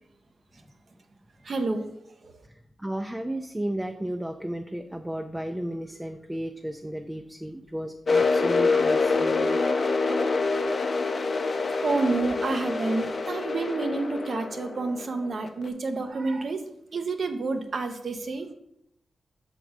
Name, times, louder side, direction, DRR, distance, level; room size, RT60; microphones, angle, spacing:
voice 1, 1.4-1.9 2.2-2.3 11.8-18.5, right 3 dB, 65° right, 6 dB, 0.8 m, -29 dB
voice 2, 2.8-9.6, right 1 dB, 15° right, 5 dB, 0.4 m, -33 dB
sound 1, 8.1-15.7, left 3 dB, 55° left, 0.6 m, -26 dB
6.2 x 3.9 x 4.7 m, 0.79 s
cardioid pair, 55°, 0 cm